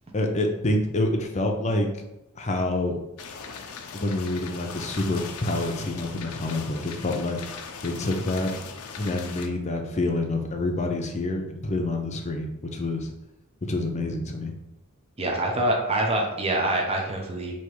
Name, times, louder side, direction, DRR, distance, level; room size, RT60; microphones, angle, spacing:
voice 1, 0.1-1.9 2.4-3.0 3.9-8.5 9.0-13.1 13.7-14.5, left 2 dB, 35° left, 3 dB, 0.6 m, -27 dB
sound 1, 3.2-9.5, left 5 dB, 90° left, 0.5 m, -39 dB
voice 2, 15.2-17.5, right 1 dB, 30° right, 0 dB, 0.6 m, -25 dB
3.3 x 2.9 x 4.6 m, 0.90 s
head